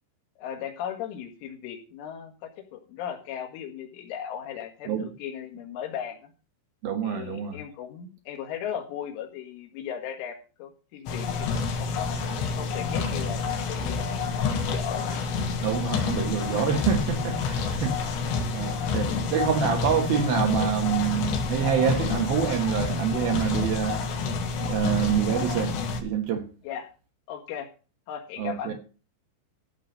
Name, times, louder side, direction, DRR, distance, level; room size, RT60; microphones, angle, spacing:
voice 1, 0.4-6.3 7.0-12.1 12.6-15.3 19.1-19.2 26.7-26.9 27.3-27.7 28.1-28.7, left 9 dB, 90° left, 4.3 m, -37 dB
voice 2, 6.8-7.6 15.6-18.2 18.5-24.1 24.6-26.5 28.4-28.7, right 8 dB, 65° right, 2.7 m, -26 dB
sound 1, 11.1-26.0, left 5 dB, 70° left, 3.7 m, -28 dB
14.5 x 5.0 x 6.5 m
omnidirectional pair, 5.5 m